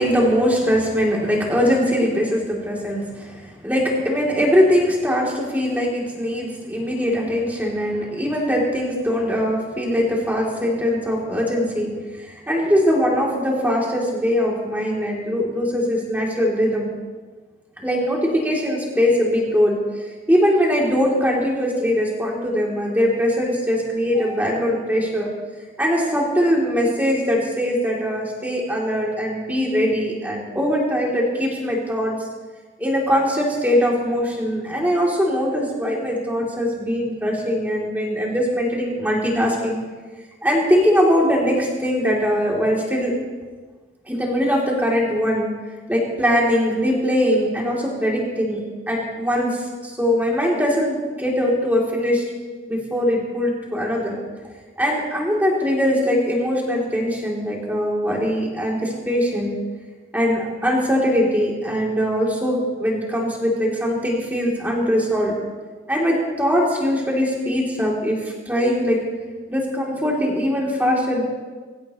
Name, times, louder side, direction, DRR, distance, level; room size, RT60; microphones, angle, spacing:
voice 1, 0.0-3.3 3.6-11.9 12.5-16.9 17.8-19.8 20.3-25.3 25.8-32.1 32.8-39.8 40.4-43.1 44.1-45.5 45.9-48.6 48.9-49.6 49.8-52.2 52.7-54.2 54.8-59.6 60.1-65.3 65.9-69.0 69.5-71.2, equal, 10° right, -3 dB, 3.3 m, -21 dB
24.5 x 15.5 x 3.2 m, 1.4 s
head